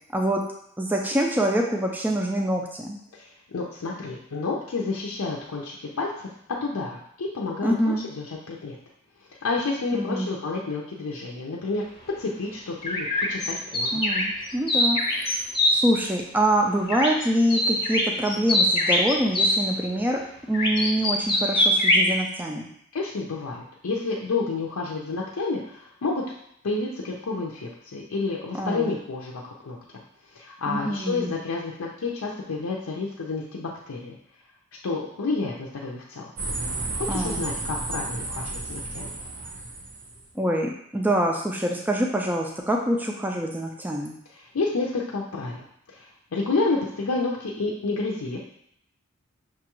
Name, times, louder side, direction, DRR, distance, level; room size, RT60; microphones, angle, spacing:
voice 1, 0.1-0.4 0.8-3.0 7.6-8.0 9.9-10.3 13.9-15.3 15.7-20.2 20.5-22.7 28.5-28.9 30.7-31.4 37.1-37.4 40.4-44.1, right 1 dB, 10° right, 1 dB, 0.3 m, -25 dB
voice 2, 3.1-6.3 6.6-8.8 9.4-14.0 22.9-26.2 26.6-29.8 30.3-34.2 34.8-36.2 36.9-39.1 44.3-48.4, left 3 dB, 85° left, -3 dB, 0.5 m, -30 dB
sound 1, 12.8-15.7 16.9-17.2 17.5-19.6 20.5-22.1, left 1 dB, 25° left, 0.8 m, -22 dB
sound 2, 36.4-40.3, right 2 dB, 55° right, 0.7 m, -32 dB
5.9 x 2.3 x 3.0 m, 0.73 s
head